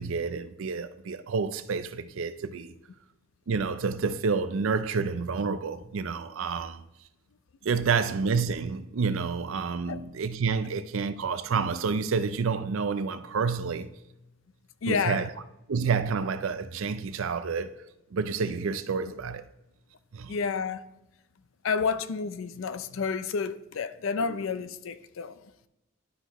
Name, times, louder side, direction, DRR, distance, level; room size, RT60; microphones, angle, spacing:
voice 1, 0.0-2.7 3.5-6.8 7.6-13.9 14.9-15.3 15.7-17.7 18.1-19.5 20.1-20.4 24.3-24.4, right 5 dB, 70° right, 0.4 m, -29 dB
voice 2, 14.8-15.3 20.3-20.8 21.6-25.5, left 5 dB, 70° left, 0.4 m, -30 dB
11.5 x 5.8 x 3.0 m
head